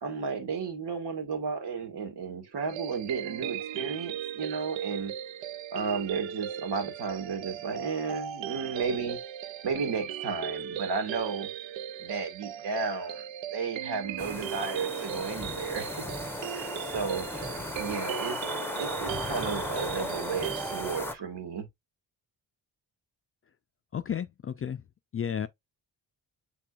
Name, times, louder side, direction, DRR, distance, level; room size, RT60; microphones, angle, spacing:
voice 1, 0.0-5.1 5.7-9.2 9.6-11.5 12.0-13.2 13.5-16.0 16.5-17.5 17.8-18.5 18.7-21.7, right 5 dB, 60° right, 1.6 m, -33 dB
sound 1, 2.7-21.0, right 10 dB, 80° right, 0.6 m, -38 dB
sound 2, 14.2-21.1, left 1 dB, 5° left, 0.8 m, -36 dB
voice 2, 23.9-24.8 25.1-25.5, left 8 dB, 30° left, 0.4 m, -32 dB
5.9 x 3.6 x 2.3 m
supercardioid pair, 60°, 46 cm